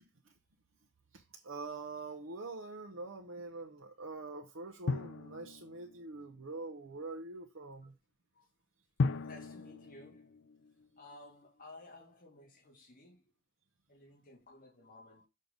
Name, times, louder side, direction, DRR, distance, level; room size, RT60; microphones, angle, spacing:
voice 1, 1.1-7.9, right 3 dB, 85° right, 0.9 m, -44 dB
Drum, 4.9-6.4 9.0-11.2, left 4 dB, 65° left, 0.5 m, -37 dB
voice 2, 9.2-10.4 11.0-13.2 13.9-15.3, left 2 dB, 45° left, 2.0 m, -55 dB
6.5 x 3.9 x 5.2 m
head